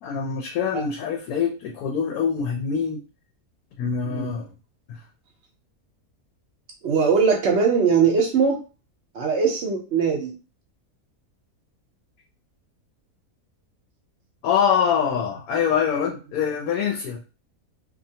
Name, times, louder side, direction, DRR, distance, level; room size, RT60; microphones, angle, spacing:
voice 1, 0.0-3.0 3.8-4.5 4.9-5.0 14.4-17.2, left 7 dB, 80° left, 0 dB, 1.0 m, -24 dB
voice 2, 6.8-8.6 9.1-10.3, right 6 dB, 60° right, 1 dB, 0.8 m, -20 dB
2.7 x 2.3 x 2.7 m, 0.33 s
omnidirectional pair, 1.6 m